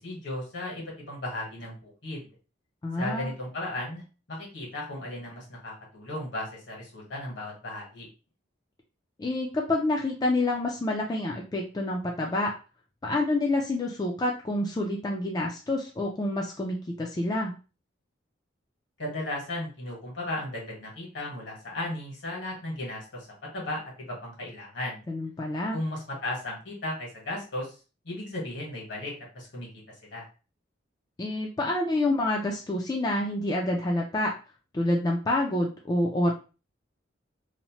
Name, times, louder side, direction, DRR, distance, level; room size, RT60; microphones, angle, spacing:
voice 1, 0.0-2.2 3.0-4.0 4.3-8.1 19.0-23.3 23.5-25.0 25.7-27.7 28.0-29.7 30.0-30.3, left 1 dB, 65° left, -2 dB, 1.3 m, -35 dB
voice 2, 2.8-3.3 9.2-12.5 13.0-17.5 25.1-25.8 31.2-34.3 34.7-36.3, left 1 dB, 20° left, -1 dB, 0.3 m, -28 dB
2.8 x 2.1 x 2.9 m, 0.33 s
head